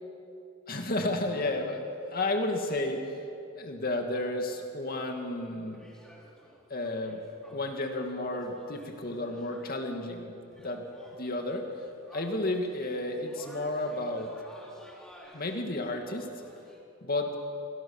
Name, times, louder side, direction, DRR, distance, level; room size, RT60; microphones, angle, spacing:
voice 1, 0.7-3.2 3.6-5.9 6.7-7.2 7.5-10.9 11.2-11.6 12.1-14.3 15.3-16.3 17.0-17.3, left 2 dB, 45° left, 3 dB, 2.3 m, -32 dB
sound 1, 5.7-9.9 10.1-10.2 10.5-16.8, equal, 5° left, 5.2 m, -53 dB
30.0 x 24.0 x 7.3 m, 2.7 s
head